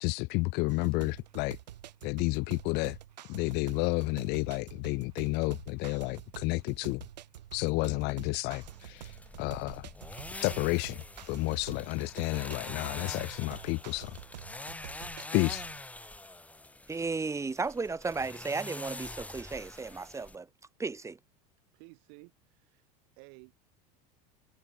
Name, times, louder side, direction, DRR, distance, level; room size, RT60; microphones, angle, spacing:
voice 1, 0.0-1.6 2.0-3.0 3.3-7.0 7.5-8.6 8.9-9.0 9.4-9.9 10.4-14.1 15.3-15.6, left 27 dB, 55° left, 0.5 m, -31 dB
sound 1, 0.7-15.8, right 12 dB, 85° right, 1.5 m, -48 dB
sound 2, 8.6-20.4, left 2 dB, 5° left, 0.9 m, -45 dB
voice 2, 16.9-20.5 20.8-21.2, right 4 dB, 15° right, 1.2 m, -34 dB
voice 3, 21.7-23.5, right 40 dB or more, 65° right, 3.8 m, -55 dB
hypercardioid pair, 90°, 21 cm